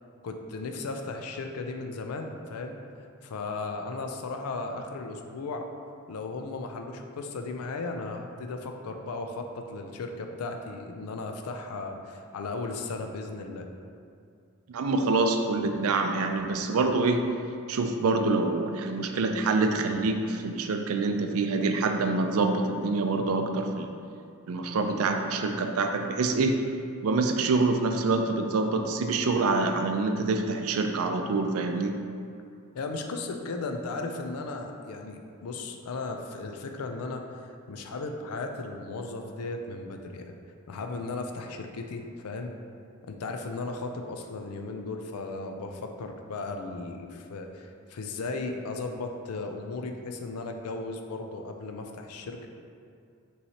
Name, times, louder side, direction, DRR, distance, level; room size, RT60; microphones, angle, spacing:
voice 1, 0.2-2.8 3.2-5.7 6.1-13.7 32.7-37.2 37.7-40.3 40.7-42.5 43.0-52.5, left 3 dB, 80° left, 4 dB, 0.4 m, -36 dB
voice 2, 14.7-17.2 17.7-23.9 24.5-26.6 27.0-32.0, right 3 dB, 70° right, 5 dB, 0.4 m, -26 dB
5.6 x 3.1 x 2.8 m, 2.4 s
head